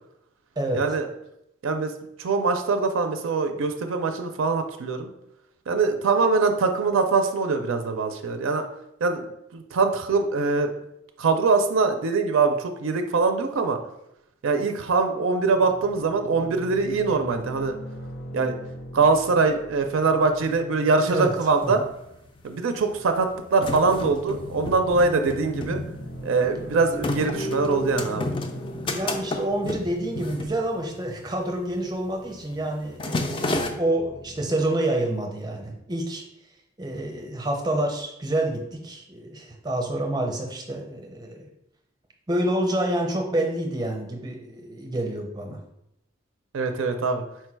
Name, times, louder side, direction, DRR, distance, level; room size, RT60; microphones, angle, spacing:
voice 1, 0.7-1.1 1.6-1.9 2.2-5.1 5.7-8.6 9.0-10.7 11.2-13.8 14.4-17.7 18.3-18.6 18.9-21.8 22.4-25.8 26.2-28.3 46.5-47.2, right 4 dB, 85° right, 6 dB, 0.4 m, -23 dB
sound 1, 15.5-34.5, equal, 75° left, 0.8 m, -42 dB
sound 2, 21.2-21.3 21.5-22.3 22.9-31.2 31.5-31.8 32.1-32.4 32.7-33.7, left 2 dB, 25° left, 0.3 m, -31 dB
voice 2, 28.7-36.2 36.8-41.5 42.3-45.6, right 1 dB, 20° right, 2 dB, 0.6 m, -28 dB
4.5 x 2.2 x 4.5 m, 0.82 s
head